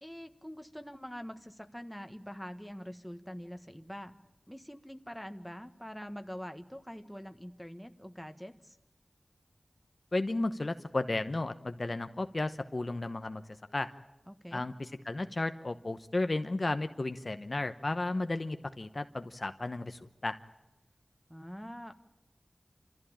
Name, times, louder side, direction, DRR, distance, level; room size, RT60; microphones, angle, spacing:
voice 1, 0.0-4.2 4.5-8.8 14.3-14.6 21.3-21.9, equal, ahead, 7 dB, 1.5 m, -44 dB
voice 2, 10.1-13.4 13.7-13.9 14.5-14.7 15.1-20.4, left 2 dB, 50° left, 9 dB, 0.9 m, -33 dB
28.0 x 14.5 x 8.9 m, 0.97 s
wide cardioid pair, 65°, 0 cm